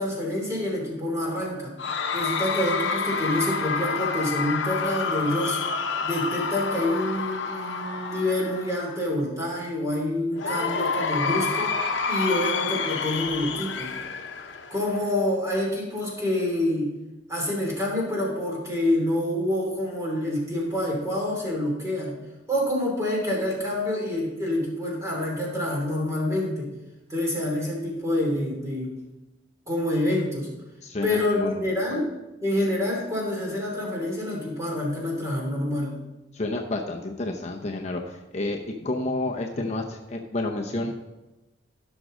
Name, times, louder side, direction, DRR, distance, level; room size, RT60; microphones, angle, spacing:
voice 1, 0.0-1.7 2.1-5.6 6.0-11.8 12.1-13.9 14.7-16.9 17.3-22.2 22.5-26.7 27.1-29.0 29.7-30.5 31.0-32.1 32.4-36.0, left 1 dB, 15° right, -2 dB, 2.9 m, -27 dB
Cheering / Crowd, 1.8-9.1 10.4-15.1, left 5 dB, 70° left, 0.9 m, -29 dB
voice 2, 30.8-32.0 36.3-40.9, left 2 dB, 35° left, 2 dB, 0.7 m, -30 dB
15.5 x 6.3 x 3.8 m, 1.0 s
head